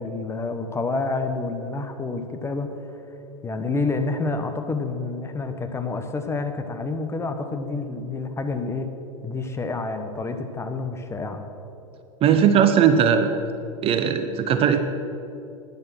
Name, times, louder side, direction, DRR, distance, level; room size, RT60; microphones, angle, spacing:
voice 1, 0.0-2.7 3.4-8.9 9.2-11.4, left 3 dB, 15° left, 7 dB, 1.0 m, -28 dB
voice 2, 12.2-13.3 13.8-14.8, right 8 dB, 30° right, 9 dB, 0.7 m, -18 dB
12.0 x 9.7 x 6.2 m, 2.8 s
figure-of-eight pair, 95°, 18 cm